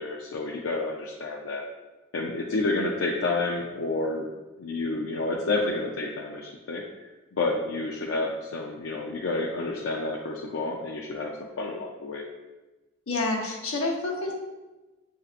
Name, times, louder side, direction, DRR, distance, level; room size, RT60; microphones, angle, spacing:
voice 1, 0.0-1.7 2.1-4.3 4.6-6.8 7.3-11.3 11.6-12.2, left 2 dB, 75° left, -1 dB, 0.5 m, -29 dB
voice 2, 13.1-14.3, left 2 dB, 90° left, -1 dB, 1.0 m, -28 dB
7.7 x 2.7 x 2.4 m, 1.1 s
head